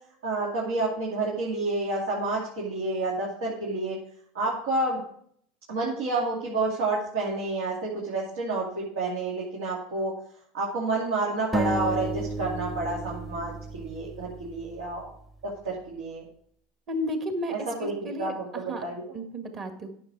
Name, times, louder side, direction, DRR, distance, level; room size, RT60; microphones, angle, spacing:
voice 1, 0.2-4.0 4.3-5.0 5.7-10.1 10.5-15.1 15.4-16.2 17.5-19.1, right 2 dB, 85° right, -4 dB, 2.5 m, -29 dB
sound 1, 11.5-15.1, right 2 dB, 5° right, 0.8 m, -33 dB
voice 2, 16.9-17.5 17.8-18.3 18.7-18.8 19.1-19.9, equal, 35° right, 5 dB, 1.8 m, -32 dB
9.8 x 6.8 x 4.7 m, 0.65 s
supercardioid pair, 125°, 0 cm